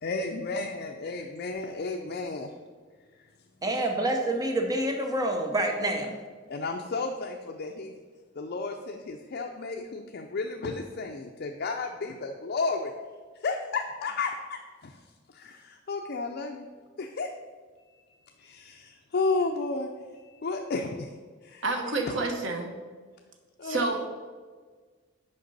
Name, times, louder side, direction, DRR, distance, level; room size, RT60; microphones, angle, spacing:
voice 1, 0.0-2.5 6.5-7.9 8.4-12.9 13.4-15.0 15.3-16.7 17.0-17.3 17.8-21.1 21.4-21.6 23.6-23.9, left 3 dB, 55° left, 2 dB, 0.5 m, -33 dB
voice 2, 3.6-6.1, right 1 dB, 20° right, 3 dB, 0.7 m, -27 dB
voice 3, 21.6-22.7 23.6-24.1, right 3 dB, 70° right, 4 dB, 1.0 m, -29 dB
6.6 x 5.1 x 5.4 m, 1.5 s
head